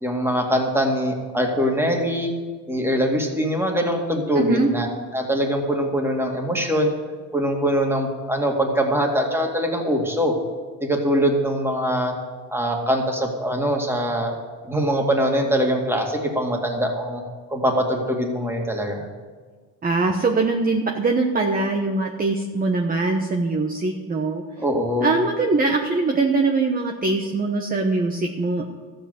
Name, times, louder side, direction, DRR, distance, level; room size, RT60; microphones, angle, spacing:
voice 1, 0.0-2.3 2.7-4.9 5.1-6.9 7.3-10.3 10.8-12.1 12.5-14.3 14.7-17.2 17.5-19.1 24.6-25.1, equal, 5° right, 1 dB, 2.3 m, -22 dB
voice 2, 4.4-4.7 19.8-24.4 25.0-28.7, right 3 dB, 25° right, 2 dB, 1.1 m, -22 dB
13.5 x 7.9 x 8.2 m, 1.5 s
cardioid pair, 120°, 37 cm